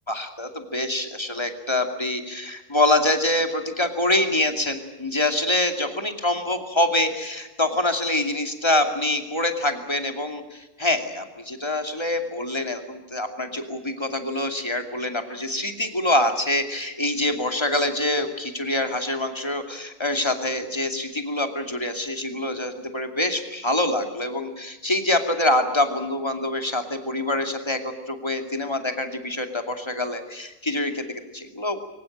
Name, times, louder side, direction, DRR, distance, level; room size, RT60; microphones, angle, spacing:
voice 1, 0.1-27.8 28.1-31.8, left 1 dB, 15° left, 5 dB, 2.5 m, -25 dB
23.0 x 19.5 x 8.8 m, 1.0 s
omnidirectional pair, 2.0 m